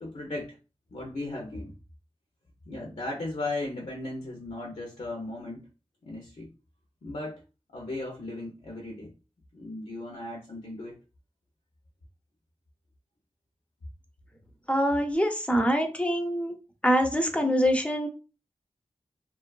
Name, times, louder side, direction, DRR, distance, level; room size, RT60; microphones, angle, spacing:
voice 1, 0.0-0.6 0.9-1.7 2.7-5.7 6.0-6.5 7.0-7.4 7.7-9.1 9.5-11.0, left 2 dB, 65° left, 0 dB, 0.6 m, -36 dB
voice 2, 14.7-16.5 16.8-18.1, equal, 10° left, 5 dB, 0.5 m, -24 dB
2.6 x 2.2 x 2.3 m, 0.32 s
wide cardioid pair, 60°, 12 cm